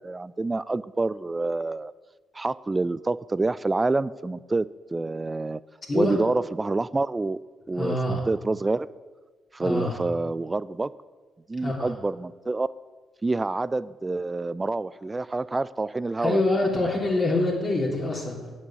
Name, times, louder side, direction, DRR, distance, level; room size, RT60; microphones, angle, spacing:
voice 1, 0.0-1.9 2.3-4.7 4.9-5.6 5.9-7.4 7.7-8.0 8.3-8.9 9.5-10.9 11.5-12.7 13.2-16.4, right 3 dB, 25° right, 18 dB, 0.3 m, -27 dB
voice 2, 5.9-6.2 7.7-8.3 9.6-10.0 11.6-11.9 16.2-18.5, left 2 dB, 40° left, -2 dB, 3.0 m, -25 dB
8.5 x 6.3 x 7.1 m, 1.4 s
hypercardioid pair, 50°, 0 cm